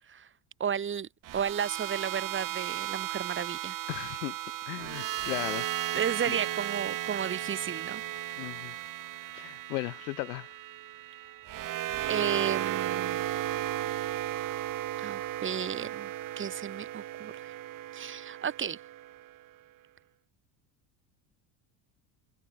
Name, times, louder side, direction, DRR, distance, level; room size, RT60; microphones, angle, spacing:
voice 1, 0.6-3.7 5.9-8.0 12.1-13.3 15.0-17.5 17.9-18.8, right 7 dB, 25° right, 1.5 m, -33 dB
sound 1, 1.2-19.4, right 14 dB, 45° right, 1.3 m, -35 dB
voice 2, 3.9-4.4 4.7-5.7 6.3-6.4 8.4-8.8 9.3-10.5, left 22 dB, 85° left, 4.4 m, -36 dB
supercardioid pair, 100°, 47 cm